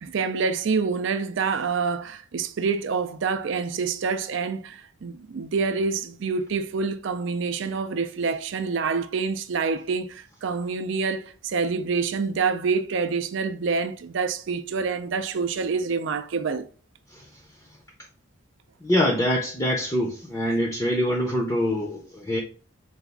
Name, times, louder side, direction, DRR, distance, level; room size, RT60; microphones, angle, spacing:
voice 1, 0.0-16.6, right 5 dB, 60° right, 0.4 m, -27 dB
voice 2, 18.8-22.4, equal, 15° left, 0.5 m, -24 dB
4.0 x 2.4 x 3.4 m
head